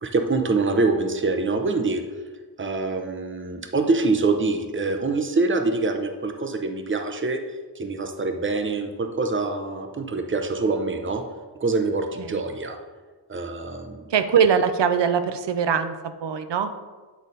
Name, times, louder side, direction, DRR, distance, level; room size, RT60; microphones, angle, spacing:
voice 1, 0.0-2.0 2.6-7.4 7.8-11.2 11.6-12.8 13.3-14.1, right 3 dB, 30° right, 5 dB, 0.6 m, -25 dB
voice 2, 14.1-16.7, right 7 dB, 75° right, 10 dB, 0.6 m, -22 dB
8.4 x 3.9 x 4.0 m, 1.4 s
wide cardioid pair, 90°, 42 cm